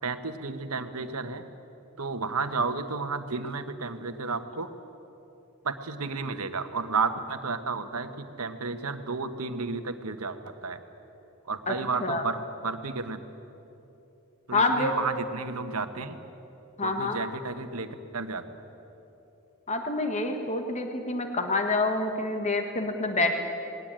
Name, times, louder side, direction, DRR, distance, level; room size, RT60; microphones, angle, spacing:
voice 1, 0.0-1.4 2.0-4.7 5.6-10.8 11.5-13.2 14.5-16.2 16.8-18.4, right 4 dB, 85° right, 9 dB, 1.3 m, -32 dB
voice 2, 11.7-12.2 14.5-14.9 16.8-17.2 19.7-23.4, left 2 dB, 30° left, 5 dB, 1.6 m, -27 dB
20.0 x 17.5 x 9.0 m, 2.9 s
head